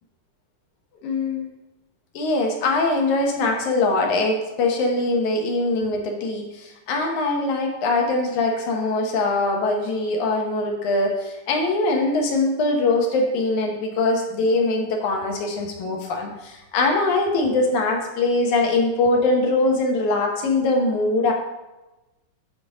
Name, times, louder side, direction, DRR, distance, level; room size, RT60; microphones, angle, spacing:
voice 1, 1.0-1.5 2.1-21.3, left 2 dB, 65° left, 1 dB, 2.5 m, -22 dB
11.0 x 4.0 x 5.0 m, 1.0 s
omnidirectional pair, 3.9 m